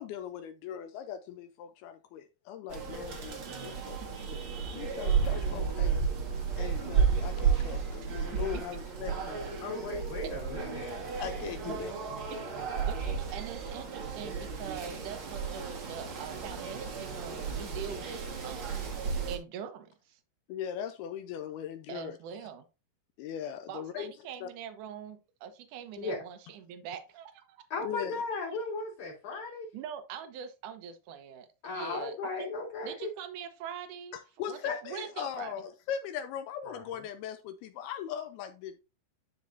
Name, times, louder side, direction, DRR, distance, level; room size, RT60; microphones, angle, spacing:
voice 1, 0.0-4.0 4.3-4.4 4.7-6.0 6.6-9.5 11.2-11.9 20.5-22.2 23.2-24.1 24.4-24.5 27.8-28.2 34.1-38.8, left 9 dB, 80° left, 2.4 m, -39 dB
sound 1, 2.7-19.4, right 6 dB, 50° right, 1.5 m, -33 dB
voice 2, 8.3-8.6 11.7-11.8 12.3-18.8 19.3-20.2 21.9-22.7 23.7-27.6 29.7-32.5 32.8-34.2 34.5-35.5, right 8 dB, 70° right, 2.0 m, -43 dB
voice 3, 9.6-11.0 26.0-26.2 27.7-29.7 31.6-33.1 34.7-34.8 36.7-37.0, left 3 dB, 45° left, 4.7 m, -36 dB
12.0 x 5.2 x 2.7 m
omnidirectional pair, 4.9 m